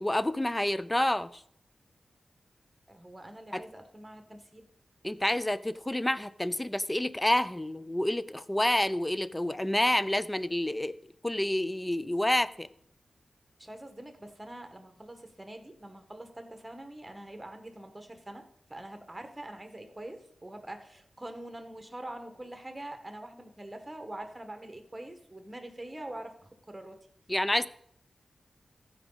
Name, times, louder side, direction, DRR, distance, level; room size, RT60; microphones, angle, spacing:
voice 1, 0.0-1.3 3.5-3.6 5.0-10.9 11.2-12.7 27.3-27.7, left 1 dB, 15° left, 0.5 m, -28 dB
voice 2, 2.9-4.7 13.6-18.4 18.7-26.4 26.7-27.0, right 1 dB, 20° right, 1.5 m, -44 dB
14.5 x 5.1 x 4.0 m
cardioid pair, 60°, 0 cm